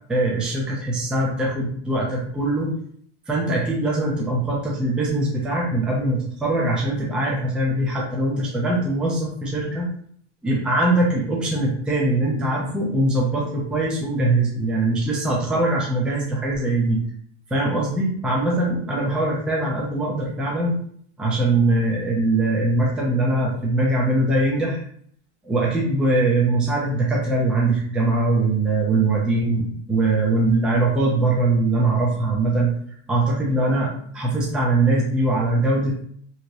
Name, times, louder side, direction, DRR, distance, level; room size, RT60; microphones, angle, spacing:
voice 1, 0.1-2.7 3.3-9.9 10.4-17.0 17.5-20.8 21.2-24.8 25.4-32.7 33.1-36.0, right 2 dB, 5° right, -3 dB, 0.4 m, -22 dB
3.0 x 2.8 x 2.6 m, 0.63 s
hypercardioid pair, 125°, 36 cm